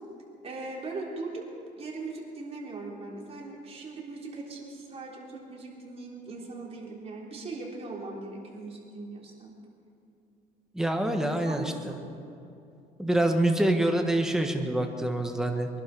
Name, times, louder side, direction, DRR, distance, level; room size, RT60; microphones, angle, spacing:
voice 1, 0.4-1.4 1.8-9.5 11.4-12.0, right 3 dB, 35° right, -2 dB, 3.7 m, -39 dB
voice 2, 10.7-11.9 13.0-15.7, right 1 dB, 5° right, 3 dB, 1.6 m, -26 dB
23.5 x 11.5 x 4.9 m, 2.7 s
cardioid pair, 110°, 17 cm